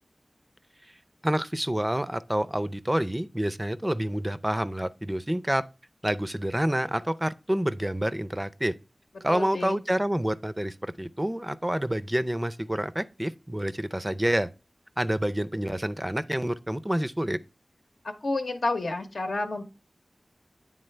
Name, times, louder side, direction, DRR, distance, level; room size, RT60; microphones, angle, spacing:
voice 1, 1.2-5.6 6.0-8.7 9.2-14.5 15.0-17.4, right 1 dB, 15° right, 0.4 m, -28 dB
voice 2, 9.3-9.8 18.0-19.6, left 2 dB, 85° left, 0.9 m, -30 dB
8.9 x 3.7 x 3.2 m
wide cardioid pair, 60°, 0 cm